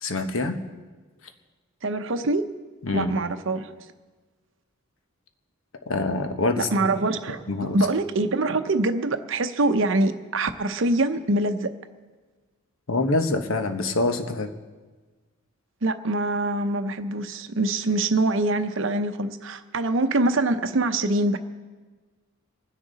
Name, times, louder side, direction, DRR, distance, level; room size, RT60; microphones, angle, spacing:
voice 1, 0.0-0.6 2.8-3.1 5.9-6.7 7.5-7.8 12.9-14.5, left 2 dB, 75° left, 7 dB, 1.2 m, -25 dB
voice 2, 1.8-2.5 2.9-3.9 6.5-11.7 15.8-21.4, right 2 dB, 65° right, 10 dB, 0.8 m, -24 dB
24.5 x 10.0 x 4.1 m, 1.3 s
head